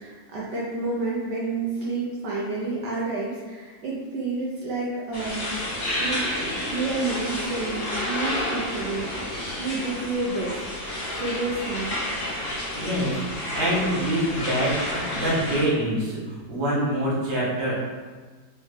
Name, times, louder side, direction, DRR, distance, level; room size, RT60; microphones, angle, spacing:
voice 1, 0.0-6.3 6.7-9.1 9.6-10.6 11.1-12.0, right 3 dB, 70° right, -6 dB, 1.3 m, -29 dB
sound 1, 5.1-15.6, left 1 dB, 40° left, 1.1 m, -30 dB
voice 2, 12.7-17.7, right 1 dB, 45° right, -7 dB, 1.2 m, -25 dB
3.4 x 3.3 x 3.2 m, 1.4 s
omnidirectional pair, 1.9 m